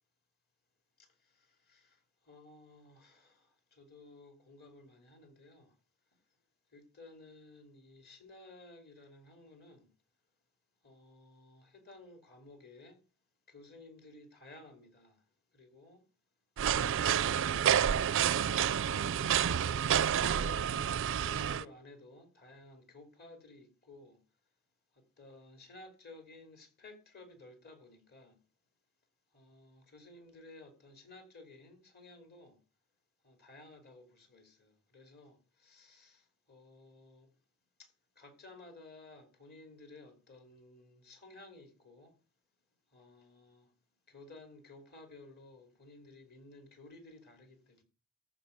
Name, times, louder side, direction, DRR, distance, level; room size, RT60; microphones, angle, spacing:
voice 1, 1.0-2.0 2.2-5.7 6.7-9.9 10.8-13.0 13.5-15.2 15.5-16.0 19.8-24.2 25.0-28.4 29.3-32.6 33.2-37.3 37.8-37.9 38.2-42.1 42.9-43.7 44.1-47.8, left 2 dB, 45° left, 2.7 m, -55 dB
sound 1, 16.6-21.6, right 9 dB, 60° right, 0.4 m, -29 dB
14.0 x 4.7 x 6.5 m
head